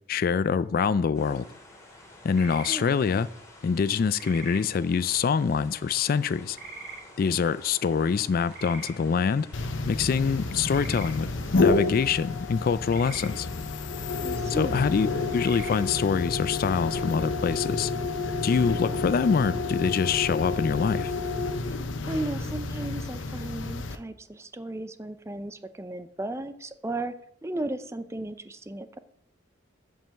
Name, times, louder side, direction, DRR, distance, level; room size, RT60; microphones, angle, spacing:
voice 1, 0.1-1.5 2.2-3.3 3.6-6.6 7.2-9.5 9.9-11.3 11.6-13.5 14.5-15.1 15.3-17.9 18.4-21.1, left 6 dB, 50° left, 0.3 m, -25 dB
sound 1, 1.1-16.1, left 2 dB, 15° left, 2.1 m, -51 dB
sound 2, 2.3-2.8 4.2-4.6 6.5-7.0 8.5-8.9 10.7-11.1 12.9-13.3 15.3-15.8, right 3 dB, 60° right, 3.2 m, -41 dB
voice 2, 2.7-3.2 14.2-14.9 22.1-27.1 27.4-29.0, right 2 dB, 15° right, 0.5 m, -35 dB
sound 3, 9.5-24.0, left 3 dB, 75° left, 0.8 m, -30 dB
7.5 x 5.5 x 6.9 m
head